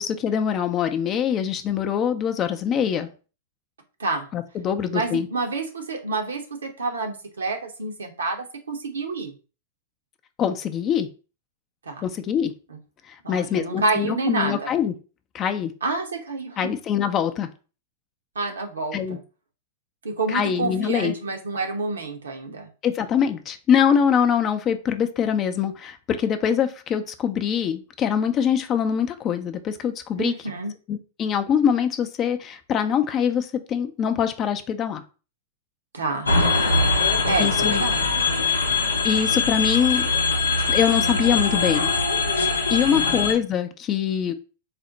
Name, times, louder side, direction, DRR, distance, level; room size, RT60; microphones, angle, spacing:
voice 1, 0.0-3.1 4.3-5.3 10.4-11.1 12.0-12.5 13.3-14.9 15.3-15.7 16.6-17.5 18.9-19.2 20.3-21.1 22.8-30.3 30.9-35.0 37.4-37.8 39.0-40.1 40.7-41.9 42.4-44.3, left 8 dB, 30° left, 8 dB, 0.5 m, -23 dB
voice 2, 4.9-9.3 11.9-12.0 13.2-14.7 15.8-16.6 18.3-19.2 20.0-22.7 30.2-30.7 35.9-36.3 37.3-38.0 42.8-43.2, right 3 dB, 80° right, 3 dB, 0.8 m, -28 dB
sound 1, 36.2-43.3, left 3 dB, 90° left, 0.6 m, -22 dB
4.2 x 2.1 x 3.9 m, 0.35 s
hypercardioid pair, 100°, 0 cm